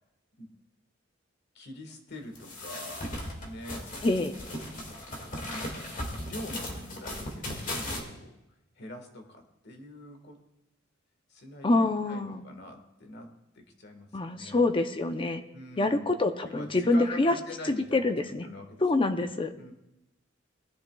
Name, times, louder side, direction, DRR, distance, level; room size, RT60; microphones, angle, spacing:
voice 1, 1.5-3.9 5.2-5.9 6.2-8.4 8.7-10.4 11.3-14.6 15.5-16.1 16.4-19.2 19.6-19.7, left 1 dB, 60° left, 5 dB, 1.5 m, -44 dB
sound 1, 2.3-8.0, left 1 dB, 45° left, 1.9 m, -37 dB
voice 2, 4.0-4.3 11.6-12.4 14.1-15.4 15.8-17.4 17.9-18.5 18.8-19.5, left 2 dB, 25° left, 8 dB, 0.6 m, -26 dB
19.0 x 10.5 x 2.3 m, 0.90 s
head